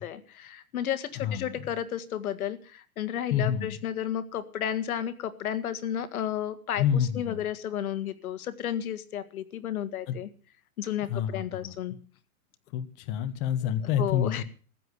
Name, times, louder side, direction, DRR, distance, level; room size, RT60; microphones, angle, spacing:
voice 1, 0.0-10.3 10.8-12.0 14.0-14.4, left 10 dB, 75° left, 10 dB, 1.9 m, -32 dB
voice 2, 1.2-1.6 3.3-3.7 6.8-7.4 10.1-10.2 11.0-11.8 12.7-14.4, left 9 dB, 30° left, 8 dB, 1.4 m, -28 dB
15.5 x 10.5 x 8.2 m, 0.41 s
hypercardioid pair, 155°, 44 cm